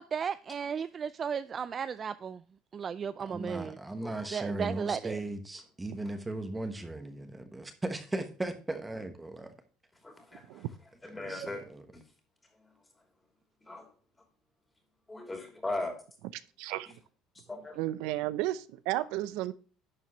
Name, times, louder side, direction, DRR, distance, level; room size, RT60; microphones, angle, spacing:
voice 1, 0.0-2.4 2.7-3.8 4.3-5.2, right 7 dB, 30° right, 0.3 m, -35 dB
voice 2, 3.2-9.5 11.0-11.8, right 2 dB, 10° right, 1.1 m, -37 dB
voice 3, 10.0-10.6 11.0-11.6 13.7-13.8 15.1-15.9 17.5-17.8, left 2 dB, 10° left, 2.9 m, -38 dB
voice 4, 16.6-16.9 17.8-19.5, right 15 dB, 80° right, 0.6 m, -33 dB
11.0 x 7.3 x 3.0 m
cardioid pair, 145°, 0 cm